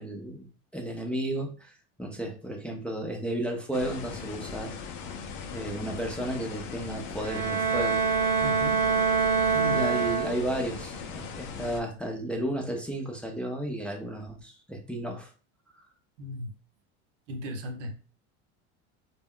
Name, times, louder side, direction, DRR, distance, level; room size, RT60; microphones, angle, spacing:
voice 1, 0.0-1.7 2.0-4.8 5.5-8.0 9.7-15.3, right 1 dB, 5° left, 1 dB, 0.5 m, -33 dB
sound 1, 3.7-11.8, left 6 dB, 55° left, 0.6 m, -39 dB
Bowed string instrument, 7.2-10.7, right 5 dB, 50° right, 0.5 m, -25 dB
voice 2, 8.4-8.8 9.5-9.8 16.2-16.5 17.3-18.0, equal, 90° right, 4 dB, 0.7 m, -35 dB
2.3 x 2.0 x 3.6 m, 0.37 s
supercardioid pair, 105°, 35 cm